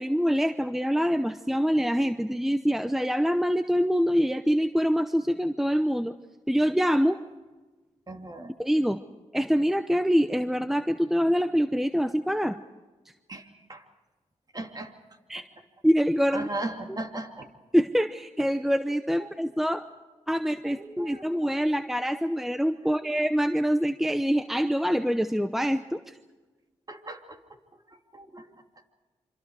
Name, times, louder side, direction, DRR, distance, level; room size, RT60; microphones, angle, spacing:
voice 1, 0.0-6.1 6.5-7.2 8.6-9.0 9.3-12.6 15.3-15.4 15.8-16.5 17.7-19.8 20.3-26.1, equal, ahead, 10 dB, 0.8 m, -25 dB
voice 2, 8.1-8.5 13.3-13.8 14.5-14.9 15.3-15.4 16.3-17.5 19.2-19.3 20.6-21.5 22.8-23.2 26.9-27.4 27.9-28.5, right 2 dB, 30° right, 4 dB, 2.6 m, -38 dB
27.0 x 25.5 x 4.9 m, 1.3 s
cardioid pair, 60°, 13 cm